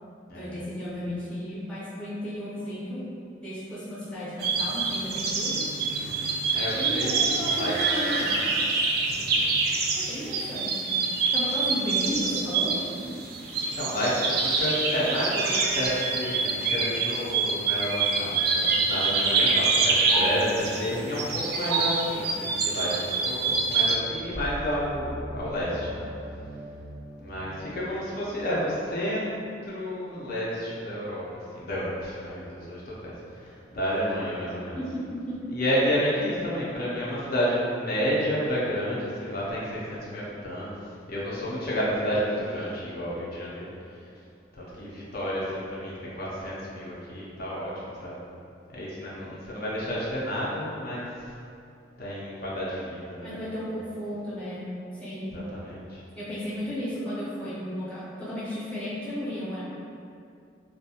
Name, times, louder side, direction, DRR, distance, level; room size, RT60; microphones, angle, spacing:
voice 1, 0.3-3.1 3.4-5.6 6.7-8.4 9.9-11.0 11.3-12.7 34.6-35.5 53.2-54.7 55.0-55.4 56.1-59.6, equal, 5° left, -10 dB, 0.6 m, -34 dB
sound 1, 4.4-23.9, right 4 dB, 60° right, 0.3 m, -26 dB
voice 2, 6.0-7.7 8.1-8.3 9.1-9.5 13.8-26.1 27.2-29.2 29.6-31.2 31.5-34.8 35.5-40.7 41.1-43.7 44.6-47.7 48.0-48.2 48.7-51.1 52.0-53.3 55.3-56.0, equal, 55° left, -7 dB, 0.5 m, -30 dB
sound 2, 23.9-28.6, equal, 90° left, 0.8 m, -40 dB
2.4 x 2.1 x 2.7 m, 2.5 s
head